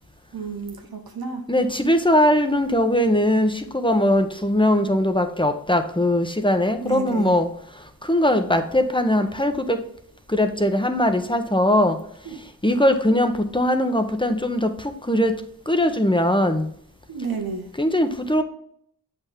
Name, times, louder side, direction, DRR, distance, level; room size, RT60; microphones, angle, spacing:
voice 1, 0.3-1.4 6.8-7.4 12.2-12.3 17.1-17.7, right 5 dB, 90° right, 3 dB, 1.4 m, -31 dB
voice 2, 1.5-7.5 8.1-9.8 10.3-12.0 12.6-14.7 15.1-15.3 15.7-16.7 17.8-18.4, left 1 dB, 15° left, 7 dB, 1.0 m, -20 dB
7.9 x 5.8 x 3.6 m, 0.67 s
wide cardioid pair, 50°, 35 cm